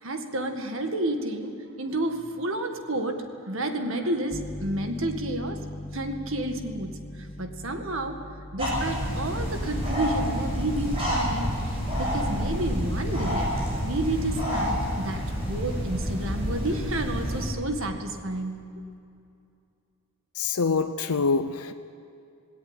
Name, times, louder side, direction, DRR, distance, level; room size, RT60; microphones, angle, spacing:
voice 1, 0.0-5.6 5.9-8.2 8.5-11.6 12.0-13.5 13.8-18.6, right 1 dB, 65° right, 1.9 m, -30 dB
Piano, 4.3-15.6, left 1 dB, ahead, 1.5 m, -42 dB
sound 1, 8.6-17.4, equal, 25° right, 7.7 m, -28 dB
voice 2, 20.4-21.7, left 4 dB, 85° left, 0.7 m, -25 dB
18.0 x 17.5 x 9.8 m
head